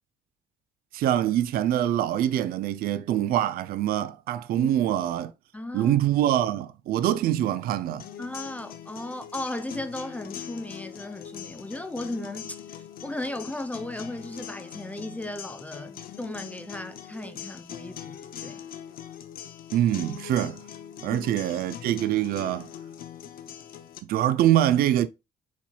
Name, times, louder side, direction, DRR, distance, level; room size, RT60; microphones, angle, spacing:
voice 1, 0.9-5.3 5.7-8.1 19.7-20.6 21.0-22.7 24.0-25.1, right 12 dB, 60° right, 0.4 m, -24 dB
voice 2, 5.5-6.0 8.2-18.6 21.1-21.2, left 1 dB, 10° left, 0.4 m, -36 dB
sound 1, 8.0-24.0, left 10 dB, 60° left, 0.7 m, -42 dB
4.4 x 4.1 x 2.3 m
cardioid pair, 110°, 17 cm